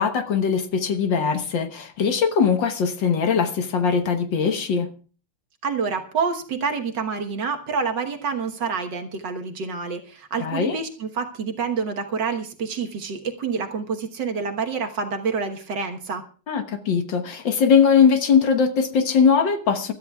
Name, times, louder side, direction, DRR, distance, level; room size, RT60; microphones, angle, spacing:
voice 1, 0.0-4.9 10.4-10.8 16.5-19.9, left 6 dB, 65° left, 7 dB, 1.8 m, -20 dB
voice 2, 5.6-16.2, right 5 dB, 60° right, 5 dB, 1.8 m, -27 dB
25.0 x 13.0 x 2.4 m, 0.38 s
omnidirectional pair, 2.3 m